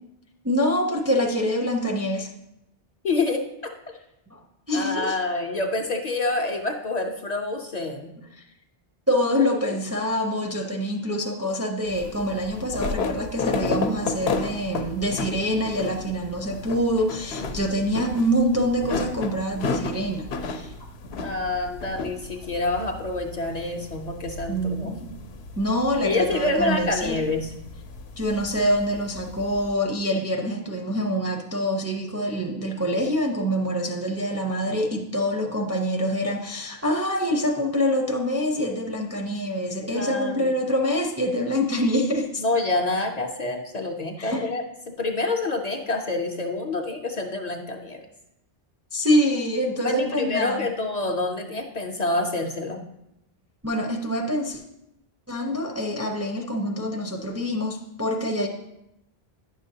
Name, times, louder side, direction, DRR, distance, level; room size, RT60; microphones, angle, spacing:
voice 1, 0.4-2.3 4.3-4.4 4.7-5.2 8.3-8.4 9.1-20.7 24.5-25.1 25.6-27.2 28.2-42.4 44.2-44.5 48.9-50.7 53.6-54.6 55.3-58.5, equal, 25° right, 1 dB, 0.4 m, -25 dB
voice 2, 3.0-3.5 4.7-8.1 17.5-17.7 21.2-24.9 26.0-27.5 39.9-40.5 42.4-48.0 49.8-52.8, left 2 dB, 50° left, 3 dB, 0.6 m, -27 dB
sound 1, 11.9-29.7, left 4 dB, 80° left, 0.9 m, -33 dB
9.5 x 6.3 x 2.7 m, 0.85 s
omnidirectional pair, 1.0 m